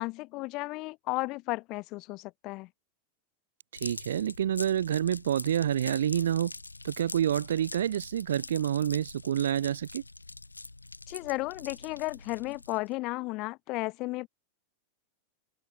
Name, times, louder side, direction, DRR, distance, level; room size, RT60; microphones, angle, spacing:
voice 1, 0.0-2.7 11.1-14.3, left 22 dB, 40° left, 2.5 m, -34 dB
sound 1, 3.8-12.9, left 2 dB, 80° left, 3.9 m, -44 dB
voice 2, 3.8-6.5 6.8-10.0, right 10 dB, 65° right, 0.3 m, -28 dB
open air
figure-of-eight pair, 90°, 0 cm